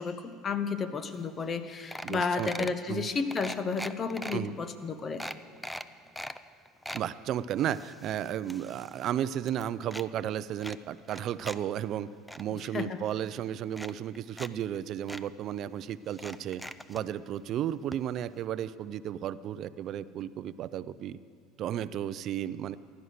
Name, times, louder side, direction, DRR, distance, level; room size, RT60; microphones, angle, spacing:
voice 1, 0.0-5.2 12.7-13.0, left 5 dB, 35° left, 10 dB, 1.1 m, -32 dB
sound 1, 1.2-1.3 1.5-1.6 1.9-2.8 3.3-4.4 4.8-4.9 5.2-6.4 6.7-7.1 7.6-9.1 9.3-10.1 10.6-11.6 11.9-12.4 13.2-13.3 13.7-14.5 14.8-14.9 15.1-15.2 16.1-17.0 17.9-18.0 18.3-18.4, equal, 5° left, 0.5 m, -41 dB
voice 2, 2.0-3.1 4.3-4.5 6.9-12.1 12.4-16.6 16.9-21.2 21.6-22.8, right 10 dB, 50° right, 16 dB, 0.5 m, -34 dB
15.5 x 11.5 x 6.5 m, 2.2 s
supercardioid pair, 90°, 0 cm